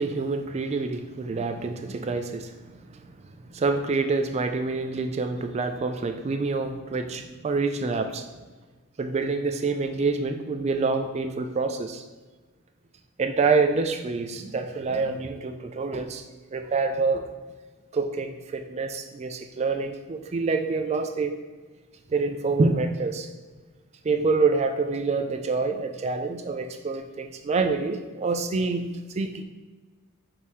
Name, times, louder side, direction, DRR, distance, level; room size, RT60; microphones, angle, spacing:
voice 1, 0.0-3.0 3.5-8.2 9.0-12.0 13.2-16.2 16.5-17.3 17.9-21.3 22.1-23.3 24.0-29.4, right 4 dB, 30° right, 6 dB, 0.3 m, -27 dB
5.4 x 2.7 x 3.1 m, 1.3 s
head